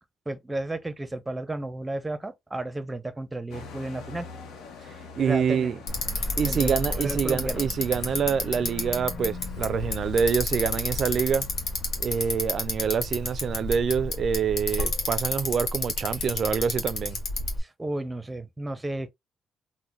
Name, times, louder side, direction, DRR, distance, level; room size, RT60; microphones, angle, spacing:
voice 1, 0.3-4.3 5.2-5.7 6.4-7.7 17.6-19.1, right 2 dB, 15° right, 0.6 m, -33 dB
sound 1, 3.5-16.4, left 4 dB, 90° left, 0.8 m, -49 dB
voice 2, 5.2-5.8 6.4-11.5 12.0-17.2, right 7 dB, 55° right, 0.3 m, -26 dB
Bicycle, 5.9-17.6, left 3 dB, 70° left, 1.3 m, -31 dB
3.8 x 2.1 x 3.1 m
cardioid pair, 90°, 0 cm